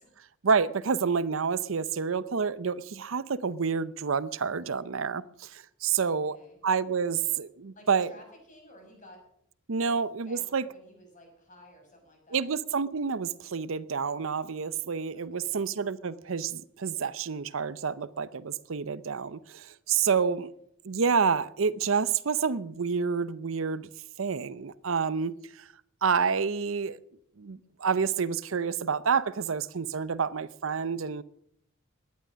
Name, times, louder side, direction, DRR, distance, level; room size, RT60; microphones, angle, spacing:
voice 1, 0.4-6.4 6.6-8.1 9.7-10.7 12.3-20.5 20.8-23.9 24.2-25.3 26.0-27.0 27.4-31.2, right 6 dB, 80° right, 0.7 m, -28 dB
voice 2, 6.0-6.6 7.7-9.2 9.8-9.9 10.3-12.5 15.1-15.6 20.2-20.5, left 1 dB, 40° left, 6.5 m, -54 dB
17.5 x 11.5 x 6.3 m
head